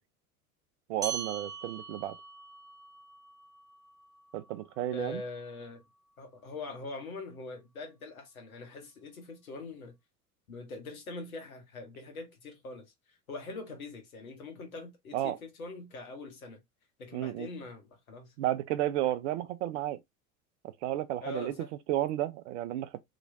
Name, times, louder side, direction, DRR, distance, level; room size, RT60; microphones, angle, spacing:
voice 1, 0.9-2.2 4.3-5.2 15.1-15.4 17.1-17.5 18.4-20.0 20.6-21.5 21.9-23.0, right 13 dB, 50° right, 0.6 m, -32 dB
sound 1, 1.0-5.8, right 6 dB, 10° right, 1.3 m, -43 dB
voice 2, 4.9-5.8 6.2-9.9 10.5-12.9 13.3-16.6 17.0-18.3 21.2-21.7, left 3 dB, 70° left, 1.3 m, -43 dB
3.1 x 2.9 x 2.6 m
figure-of-eight pair, 75°, 44 cm